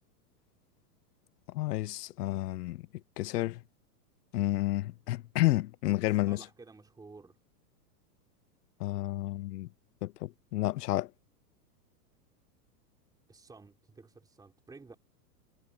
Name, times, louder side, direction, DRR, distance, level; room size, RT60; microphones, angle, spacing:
voice 1, 1.5-2.8 3.2-3.6 4.3-6.4 8.8-9.7 10.0-11.1, left 17 dB, 75° left, 0.7 m, -30 dB
voice 2, 6.1-7.4 13.3-15.0, right 3 dB, 10° right, 4.7 m, -53 dB
supercardioid pair, 150°, 48 cm